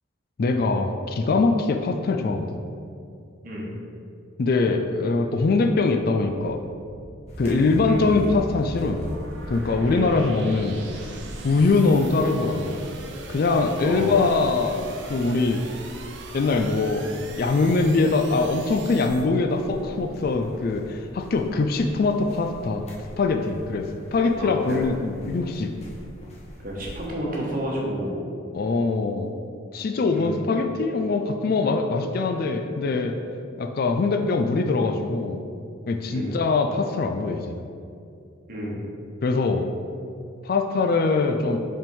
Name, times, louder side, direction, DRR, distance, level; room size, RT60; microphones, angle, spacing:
voice 1, 0.4-2.6 4.4-6.6 7.4-9.0 9.5-11.2 11.4-12.9 13.3-15.7 16.3-22.9 23.2-25.7 28.5-29.3 29.7-33.2 33.6-35.4 35.9-37.6 39.2-39.7 40.4-41.6, left 3 dB, 45° left, 5 dB, 0.3 m, -23 dB
sound 1, 5.1-19.3, right 3 dB, 60° right, 0.5 m, -42 dB
sound 2, 7.3-27.1, left 1 dB, 30° left, 0.9 m, -42 dB
voice 2, 7.4-8.1 9.9-10.1 13.8-14.1 24.4-24.8 26.6-28.2 30.1-30.3 36.1-36.4 38.5-38.8, equal, 40° right, -3 dB, 1.1 m, -30 dB
5.4 x 3.6 x 5.3 m, 2.4 s
head